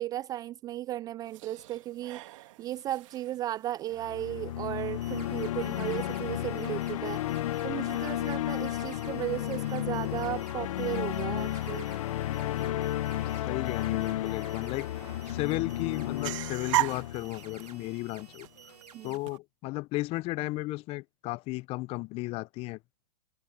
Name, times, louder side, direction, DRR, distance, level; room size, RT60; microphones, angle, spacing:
voice 1, 0.0-2.2 2.6-7.2 7.6-11.9 18.9-19.1, right 13 dB, 20° right, 0.3 m, -35 dB
sound 1, 1.2-19.4, right 17 dB, 55° right, 3.0 m, -41 dB
sound 2, 4.0-18.2, left 13 dB, 60° left, 1.0 m, -33 dB
sound 3, 4.8-19.2, right 6 dB, 90° right, 4.3 m, -54 dB
voice 2, 13.4-14.9 15.3-18.5 19.0-22.8, left 21 dB, 30° left, 0.7 m, -34 dB
hypercardioid pair, 120°, 20 cm